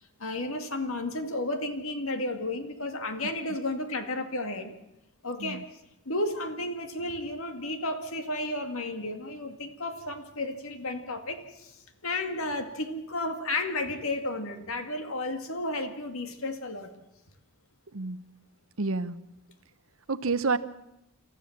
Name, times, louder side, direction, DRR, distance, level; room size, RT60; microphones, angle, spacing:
voice 1, 0.0-4.7 5.2-5.6 6.1-16.9, left 2 dB, 65° left, 7 dB, 2.2 m, -33 dB
voice 2, 17.9-18.2 18.8-19.2 20.1-20.6, right 4 dB, 65° right, 14 dB, 0.9 m, -28 dB
28.0 x 14.0 x 7.3 m, 0.88 s
head